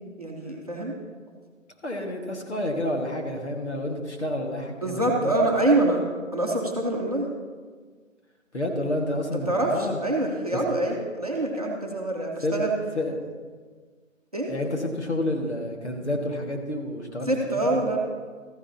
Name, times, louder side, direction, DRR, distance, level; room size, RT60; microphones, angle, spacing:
voice 1, 0.2-0.9 4.8-6.0 6.3-7.3 9.5-9.7 10.0-12.7 14.3-14.5 17.3-18.0, right 2 dB, 30° right, -2 dB, 1.0 m, -25 dB
voice 2, 1.8-5.6 8.5-10.0 10.5-10.7 12.4-12.6 12.9-13.3 14.5-17.9, left 1 dB, 55° left, 1 dB, 1.7 m, -30 dB
14.0 x 10.0 x 2.8 m, 1.5 s
figure-of-eight pair, 165°, 40 cm